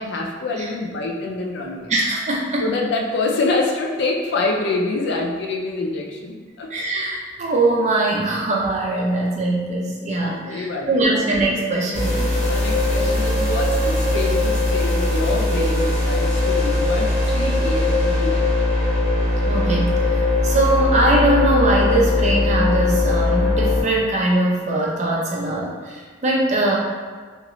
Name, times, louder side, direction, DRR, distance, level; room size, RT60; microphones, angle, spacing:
voice 1, 0.0-1.9 2.6-6.7 10.2-11.0 12.4-18.5, left 3 dB, 60° left, 0 dB, 0.4 m, -26 dB
voice 2, 1.9-2.7 6.7-12.3 19.4-26.8, right 2 dB, 35° right, -2 dB, 0.5 m, -21 dB
sound 1, 11.9-23.8, left 2 dB, 35° left, 0.8 m, -20 dB
2.9 x 2.4 x 2.9 m, 1.5 s
head